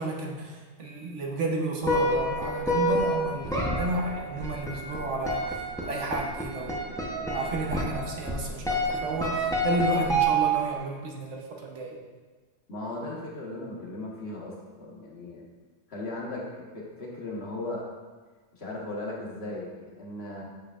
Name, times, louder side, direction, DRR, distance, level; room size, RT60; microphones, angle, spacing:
voice 1, 0.0-5.5 5.8-6.8 7.2-12.0, right 2 dB, 75° right, -1 dB, 1.3 m, -32 dB
sound 1, 1.8-10.8, right 1 dB, 5° left, 0.6 m, -28 dB
voice 2, 12.7-15.4 15.9-17.8 18.5-20.4, left 2 dB, 60° left, -3 dB, 1.3 m, -37 dB
7.5 x 5.6 x 2.4 m, 1.4 s
omnidirectional pair, 1.3 m